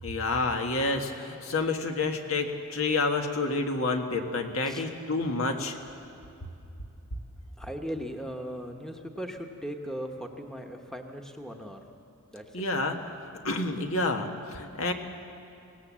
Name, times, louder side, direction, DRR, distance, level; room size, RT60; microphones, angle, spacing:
voice 1, 0.0-5.7 12.5-13.0 13.4-14.9, left 3 dB, 75° left, 4 dB, 1.6 m, -29 dB
voice 2, 7.6-11.8 12.3-12.4, equal, 5° left, 3 dB, 1.1 m, -38 dB
24.5 x 18.0 x 7.4 m, 2.7 s
head